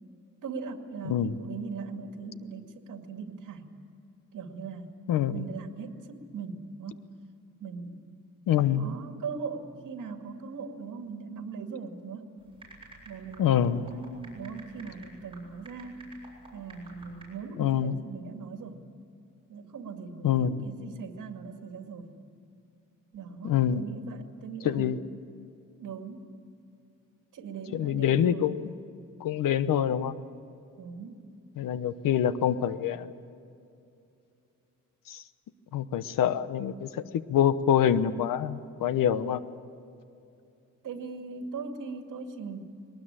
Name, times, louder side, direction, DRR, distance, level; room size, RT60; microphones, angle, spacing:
voice 1, 0.4-3.7 4.3-4.9 5.3-7.0 7.6-8.0 8.7-12.3 13.1-16.1 16.5-18.8 19.5-22.2 23.1-25.0 25.8-26.3 27.3-28.6 30.8-31.2 40.8-42.7, right 5 dB, 70° right, 5 dB, 2.3 m, -40 dB
voice 2, 1.0-1.4 5.1-5.4 8.5-8.9 13.4-13.8 17.6-18.0 20.2-20.7 23.4-23.8 24.6-25.0 27.7-28.7 29.2-30.1 31.6-33.1 35.1-35.2 35.7-37.0 37.3-39.4, left 9 dB, 85° left, 14 dB, 1.0 m, -26 dB
sound 1, 12.4-17.2, right 3 dB, 15° right, 7.6 m, -52 dB
21.5 x 19.5 x 8.9 m, 2.6 s
cardioid pair, 150°, 32 cm